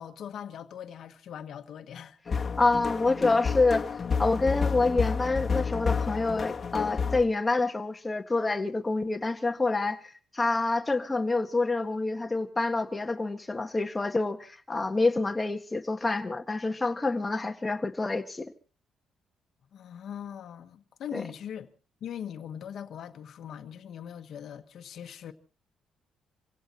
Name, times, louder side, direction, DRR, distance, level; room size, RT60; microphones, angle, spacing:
voice 1, 0.0-2.2 19.7-21.7 22.0-25.3, left 9 dB, 65° left, 1.4 m, -41 dB
sound 1, 2.3-7.2, left 5 dB, 40° left, 1.8 m, -30 dB
voice 2, 2.3-3.8 4.2-18.5 21.1-21.2, left 3 dB, 20° left, 1.8 m, -27 dB
27.0 x 17.0 x 3.0 m
cardioid pair, 90°, 0 cm